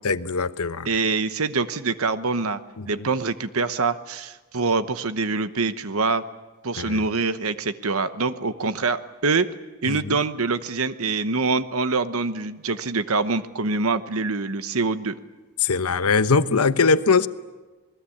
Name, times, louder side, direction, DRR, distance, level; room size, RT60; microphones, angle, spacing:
voice 1, 0.0-0.9 2.8-2.9 6.8-7.0 9.9-10.2 15.6-17.3, left 4 dB, 80° left, 13 dB, 1.0 m, -21 dB
voice 2, 0.8-2.6 2.9-6.2 6.6-9.5 9.8-15.1, right 4 dB, 70° right, 12 dB, 1.0 m, -25 dB
27.5 x 20.5 x 8.6 m, 1.2 s
head